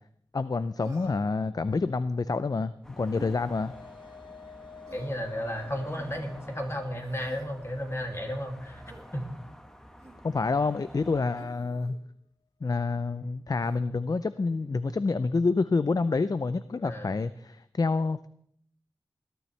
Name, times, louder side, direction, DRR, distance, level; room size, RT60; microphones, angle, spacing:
voice 1, 0.3-3.7 10.2-12.0 12.6-18.3, left 4 dB, 50° left, 13 dB, 0.4 m, -28 dB
Human voice, 0.8-1.4 3.1-3.4 4.9-5.3 6.9-7.5 8.8-9.1 10.0-10.3 11.3-12.0 13.6-13.8, right 2 dB, 40° right, 2.7 m, -50 dB
sound 1, 2.8-11.4, left 6 dB, 75° left, 1.0 m, -51 dB
sound 2, 2.8-11.4, equal, 5° left, 1.1 m, -50 dB
voice 2, 4.9-9.4 16.8-17.2, equal, 35° left, 2 dB, 2.4 m, -34 dB
20.5 x 12.0 x 3.3 m, 0.68 s
wide cardioid pair, 65°, 8 cm